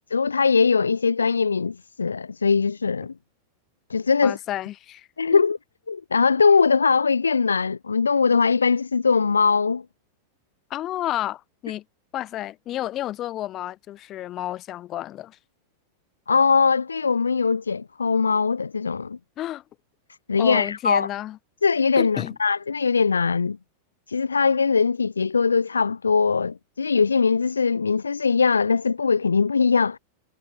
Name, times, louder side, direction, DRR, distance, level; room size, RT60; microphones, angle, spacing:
voice 1, 0.1-3.1 3.9-4.4 5.2-5.6 5.9-9.8 16.3-19.2 20.3-21.1 21.6-23.6 24.1-30.0, left 5 dB, 75° left, 0.7 m, -21 dB
voice 2, 4.2-5.4 10.7-11.8 12.1-15.4 19.4-19.6 20.4-21.4 22.0-22.3, left 13 dB, 35° left, 5.7 m, -31 dB
figure-of-eight pair, 90°, 0 cm